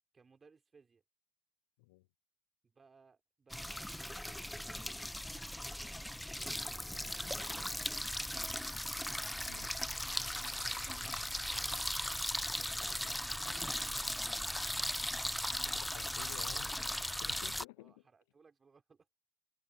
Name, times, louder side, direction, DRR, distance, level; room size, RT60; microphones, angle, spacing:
voice 1, 0.1-1.0 2.6-4.9 5.5-7.9 9.9-12.0 12.6-14.1 16.1-17.4 17.8-19.1, right 5 dB, 20° right, 5.1 m, -65 dB
sound 1, 3.5-17.6, left 1 dB, 5° left, 0.3 m, -38 dB
voice 2, 9.5-9.8 15.6-17.9, left 23 dB, 70° left, 0.6 m, -53 dB
supercardioid pair, 105°, 0 cm